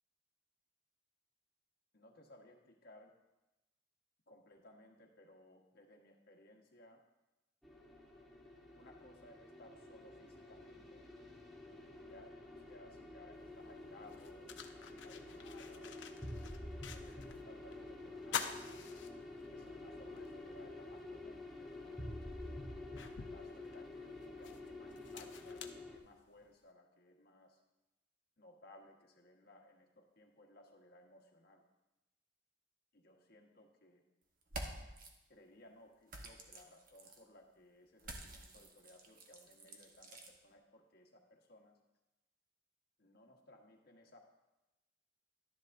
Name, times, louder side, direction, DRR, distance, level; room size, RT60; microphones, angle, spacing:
voice 1, 1.9-3.1 4.3-7.0 8.7-11.0 12.1-12.3 12.7-16.0 16.7-18.8 19.4-22.0 23.1-27.6 28.4-31.6 32.9-34.0 35.3-41.8 43.0-44.2, left 1 dB, 60° left, 1 dB, 1.4 m, -61 dB
sound 1, 7.6-26.0, left 2 dB, ahead, 1.2 m, -49 dB
sound 2, 13.4-13.5 14.0-17.4 17.7-17.8 18.2-19.7 20.2-20.3 21.7-21.8 22.3-26.5, left 7 dB, 85° left, 0.7 m, -47 dB
sound 3, 34.4-35.1 36.1-37.2 38.0-40.3, right 2 dB, 50° right, 1.2 m, -49 dB
12.0 x 10.5 x 2.6 m, 1.0 s
head